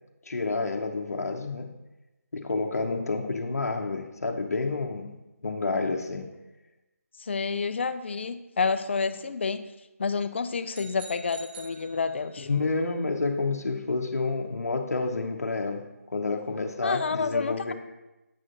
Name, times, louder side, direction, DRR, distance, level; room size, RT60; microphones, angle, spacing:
voice 1, 0.3-1.7 2.3-5.1 5.4-6.3 12.4-15.8 16.1-17.7, left 3 dB, 80° left, 3 dB, 0.7 m, -29 dB
voice 2, 7.2-9.7 10.0-12.5 16.8-17.7, left 5 dB, 45° left, 11 dB, 0.4 m, -29 dB
sound 1, 10.7-12.6, right 3 dB, 40° right, 0.6 m, -46 dB
8.4 x 6.2 x 2.5 m, 1.0 s
figure-of-eight pair, 165°, 8 cm